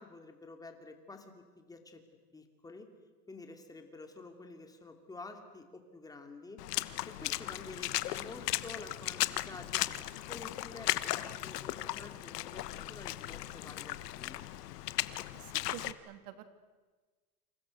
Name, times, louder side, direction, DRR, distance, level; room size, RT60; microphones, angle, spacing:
voice 1, 0.0-2.0 2.3-2.9 3.3-6.6 7.1-14.5, left 3 dB, 10° left, 5 dB, 2.8 m, -49 dB
Water / Splash splatter, 6.6-15.9, left 15 dB, 85° left, 1.3 m, -36 dB
voice 2, 15.3-16.4, right 12 dB, 70° right, 9 dB, 3.1 m, -48 dB
29.0 x 28.0 x 6.6 m, 1.3 s
supercardioid pair, 155°, 46 cm